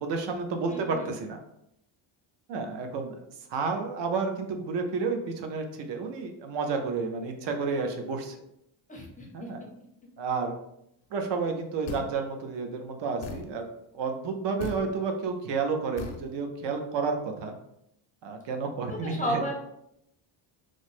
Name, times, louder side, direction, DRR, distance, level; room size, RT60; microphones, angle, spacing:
voice 1, 0.0-1.4 2.5-8.4 9.3-9.6 10.2-10.6 11.1-13.7 13.9-17.5 18.2-19.4, right 4 dB, 65° right, 4 dB, 0.6 m, -31 dB
voice 2, 0.6-1.1 8.9-9.7 18.9-19.5, equal, 15° left, -1 dB, 0.4 m, -33 dB
sound 1, 11.9-12.2 13.2-13.5 14.6-14.9 16.0-16.3, left 5 dB, 75° left, 0.6 m, -37 dB
3.1 x 2.0 x 4.1 m, 0.78 s
cardioid pair, 175°, 47 cm